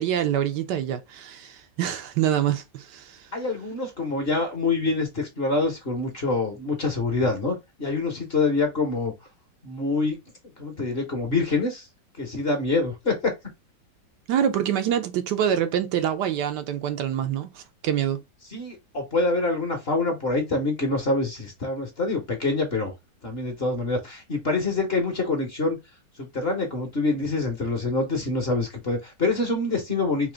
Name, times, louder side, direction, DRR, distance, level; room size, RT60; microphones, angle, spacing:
voice 1, 0.0-3.3 14.3-18.2, right 10 dB, 75° right, 1.1 m, -26 dB
voice 2, 3.3-9.1 9.6-10.2 10.6-11.9 12.2-13.4 18.5-22.9 23.2-25.8 26.2-30.3, left 3 dB, 40° left, 1.1 m, -26 dB
3.8 x 2.8 x 3.3 m
omnidirectional pair, 2.0 m